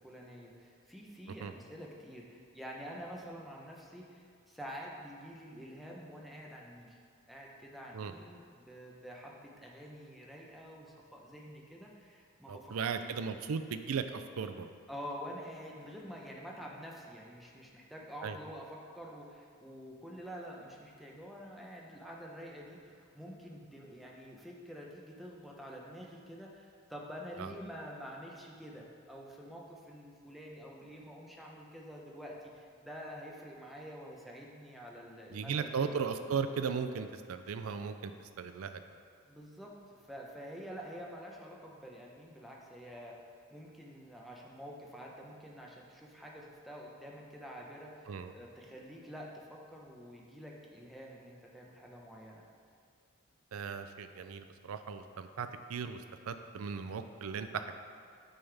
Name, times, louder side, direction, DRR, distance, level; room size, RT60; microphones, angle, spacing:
voice 1, 0.0-7.0 7.3-12.7 14.9-35.9 39.3-43.2 43.5-52.4, equal, ahead, -3 dB, 0.8 m, -48 dB
voice 2, 12.5-14.7 18.2-18.4 27.4-27.5 35.3-38.8 48.1-48.3 53.5-57.7, right 6 dB, 75° right, 9 dB, 0.4 m, -37 dB
8.9 x 5.5 x 3.4 m, 2.2 s
head